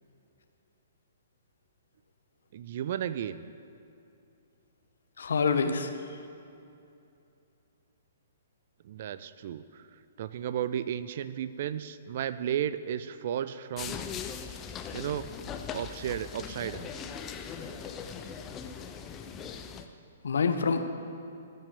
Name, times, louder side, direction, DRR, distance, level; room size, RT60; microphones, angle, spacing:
voice 1, 2.5-3.5 8.8-9.8 10.2-14.0 14.9-15.3 15.7-16.9, right 10 dB, 45° right, 14 dB, 0.4 m, -34 dB
voice 2, 5.2-5.9 20.2-20.8, left 5 dB, 60° left, 7 dB, 0.8 m, -26 dB
sound 1, 13.8-19.9, left 7 dB, 20° left, 0.6 m, -40 dB
14.5 x 5.7 x 6.6 m, 2.6 s
figure-of-eight pair, 120°, 0 cm